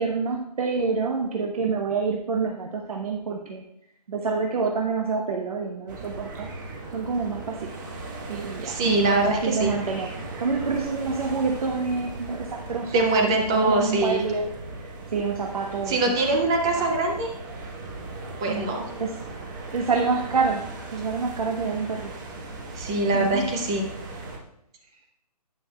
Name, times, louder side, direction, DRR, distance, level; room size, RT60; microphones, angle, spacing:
voice 1, 0.0-3.6 4.1-6.5 6.9-7.7 8.3-14.5 14.8-16.2 16.8-16.9 18.5-18.7 19.0-19.2 19.7-20.6 20.9-22.1 23.1-23.5, right 4 dB, 60° right, 2 dB, 1.0 m, -27 dB
sound 1, 5.9-24.4, right 2 dB, 30° right, 1.3 m, -38 dB
voice 2, 8.7-9.7 12.9-14.2 15.9-17.3 18.4-18.8 22.8-23.8, right 2 dB, 5° right, 2 dB, 0.3 m, -23 dB
10.0 x 9.3 x 2.3 m, 0.82 s
hypercardioid pair, 160°, 21 cm